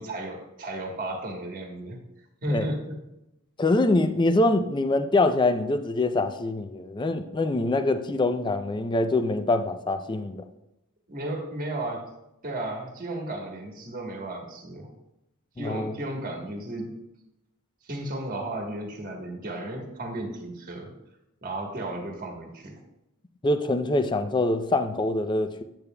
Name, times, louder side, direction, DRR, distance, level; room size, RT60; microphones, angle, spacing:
voice 1, 0.0-2.0 2.4-3.0 11.1-12.0 12.4-14.9 15.6-16.9 17.8-20.9 21.4-22.8, right 1 dB, 40° right, 1 dB, 1.2 m, -34 dB
voice 2, 3.6-10.4 15.6-15.9 23.4-25.6, left 2 dB, 20° left, 9 dB, 0.4 m, -24 dB
8.8 x 8.1 x 2.2 m, 0.89 s
head